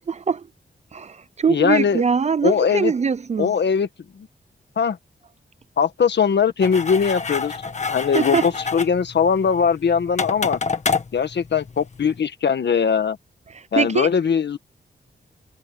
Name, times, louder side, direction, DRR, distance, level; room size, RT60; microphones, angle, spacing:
voice 1, 0.1-0.4 0.9-3.5 8.1-8.4 13.5-14.1, right 6 dB, 35° right, 0.4 m, -22 dB
voice 2, 1.5-2.0 2.4-2.9 3.4-3.9 4.2-4.3 4.8-5.0 5.8-7.5 7.9-10.6 11.1-13.2 13.7-14.6, left 6 dB, 65° left, 1.5 m, -20 dB
sound 1, 6.6-12.2, left 4 dB, 40° left, 1.6 m, -28 dB
wide cardioid pair, 165°, 19 cm